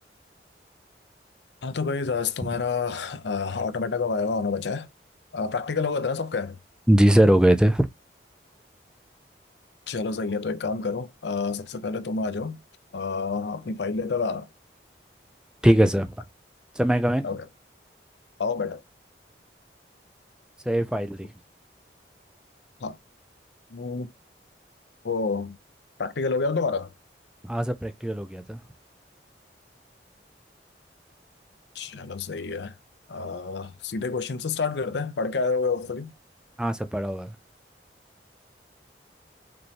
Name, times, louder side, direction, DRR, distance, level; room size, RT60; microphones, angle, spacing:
voice 1, 1.6-4.9 5.3-6.6 9.9-12.6 12.9-14.5 17.2-17.4 18.4-18.8 22.8-23.0 23.7-24.1 25.0-25.6 26.0-26.9 31.8-32.7 33.1-36.1, left 4 dB, 80° left, 0.6 m, -28 dB
voice 2, 6.9-7.9 15.6-16.1 16.8-17.3 20.7-21.3 27.4-28.6 36.6-37.3, right 1 dB, 5° right, 0.4 m, -21 dB
5.2 x 3.1 x 2.8 m
head